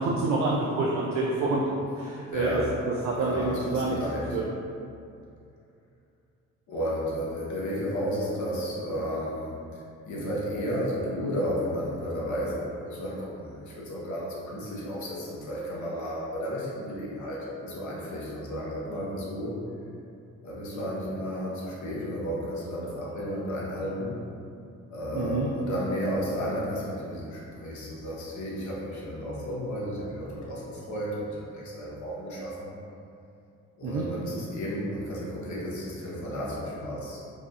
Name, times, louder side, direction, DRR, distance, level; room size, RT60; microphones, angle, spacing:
voice 1, 0.0-1.6 2.0-2.6 2.9-4.0 4.3-4.4 25.1-25.5 33.8-34.0, right 3 dB, 65° right, -3 dB, 0.5 m, -27 dB
voice 2, 2.3-2.7 3.2-4.4 6.7-19.6 20.4-24.2 24.9-32.7 33.8-37.2, equal, 70° left, -5 dB, 1.0 m, -33 dB
4.8 x 2.7 x 2.4 m, 2.6 s
cardioid pair, 90°, 30 cm